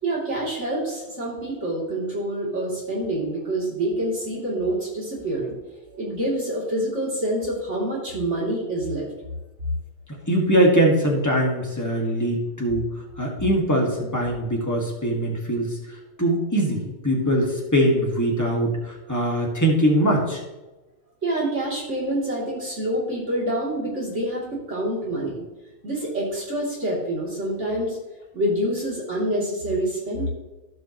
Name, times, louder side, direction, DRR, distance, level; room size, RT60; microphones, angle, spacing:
voice 1, 0.0-5.5 5.9-9.1 19.1-19.2 21.2-25.4 25.8-28.0 28.3-30.3, right 1 dB, 50° right, -5 dB, 3.3 m, -27 dB
voice 2, 10.3-12.8 13.2-20.4, right 1 dB, 10° left, -2 dB, 1.8 m, -22 dB
15.5 x 5.5 x 3.0 m, 1.1 s
omnidirectional pair, 1.5 m